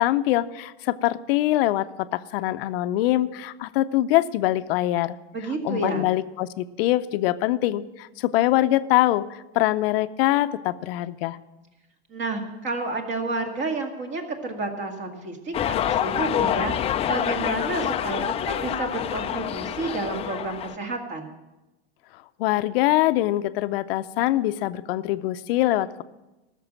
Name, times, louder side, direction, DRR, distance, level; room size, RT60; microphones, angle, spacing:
voice 1, 0.0-5.2 5.6-11.4 22.4-26.0, left 15 dB, 60° left, 13 dB, 0.6 m, -23 dB
voice 2, 5.3-6.1 12.1-21.3, right 3 dB, 35° right, 4 dB, 2.0 m, -30 dB
sound 1, 15.5-20.7, left 10 dB, 20° left, 0.4 m, -27 dB
13.5 x 6.8 x 7.4 m, 1.0 s
supercardioid pair, 125°, 33 cm